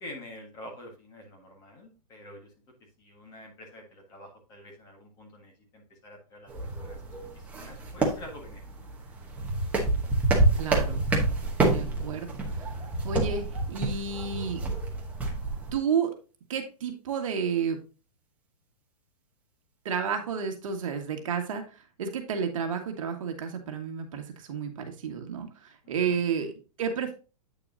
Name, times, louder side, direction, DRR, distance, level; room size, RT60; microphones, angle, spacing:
voice 1, 0.0-2.5 3.0-7.0 7.3-8.6 25.8-26.2, left 1 dB, 20° left, 1 dB, 1.6 m, -47 dB
sound 1, 6.5-15.7, right 2 dB, 5° right, 1.0 m, -28 dB
voice 2, 10.6-11.1 11.6-12.7 13.0-14.6 15.7-16.1 16.5-17.8 19.9-26.5 26.8-27.1, right 6 dB, 50° right, 4 dB, 1.8 m, -31 dB
8.7 x 6.6 x 2.7 m, 0.33 s
hypercardioid pair, 170°, 21 cm